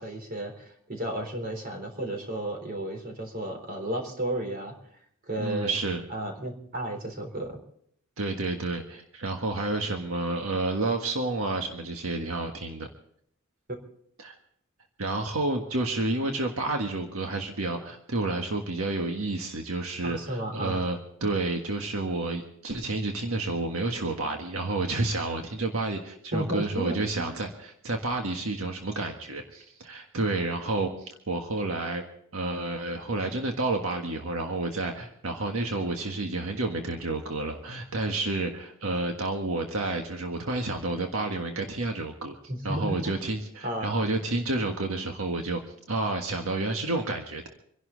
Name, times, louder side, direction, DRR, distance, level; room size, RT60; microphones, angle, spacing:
voice 1, 0.0-4.7 5.3-5.8 6.1-7.6 20.0-20.8 26.3-27.0 42.5-43.2 43.6-44.1, right 1 dB, 45° right, 4 dB, 3.8 m, -33 dB
voice 2, 5.4-6.0 8.2-12.9 14.2-14.3 15.0-27.5 27.8-32.0 32.3-42.3 42.6-45.6 45.9-47.5, right 2 dB, 90° right, 3 dB, 1.6 m, -30 dB
27.0 x 11.5 x 4.0 m, 0.65 s
head